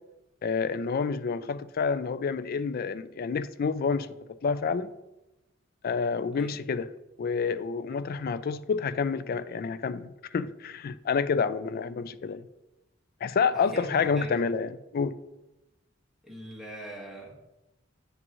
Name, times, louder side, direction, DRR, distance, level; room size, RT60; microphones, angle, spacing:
voice 1, 0.4-4.1 4.4-4.9 5.8-6.9 7.2-12.4 13.2-15.2, left 5 dB, 50° left, 0.4 m, -28 dB
voice 2, 13.5-14.4 16.2-17.4, right 1 dB, ahead, 1.6 m, -42 dB
9.0 x 6.1 x 3.1 m
head